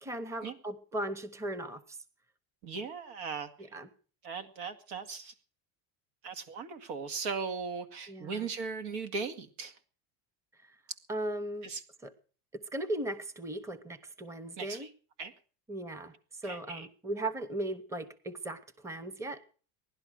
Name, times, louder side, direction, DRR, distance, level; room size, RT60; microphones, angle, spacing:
voice 1, 0.0-2.0 3.6-3.9 8.1-8.5 11.1-11.7 12.0-12.1 12.5-14.9 15.7-19.4, right 1 dB, 5° right, 15 dB, 0.9 m, -37 dB
voice 2, 2.6-3.5 4.2-5.3 6.2-9.7 11.6-11.8 14.6-14.9 15.2-15.3 16.4-16.9, right 5 dB, 85° right, 10 dB, 2.2 m, -38 dB
17.5 x 11.5 x 6.4 m, 0.41 s
cardioid pair, 160°, 42 cm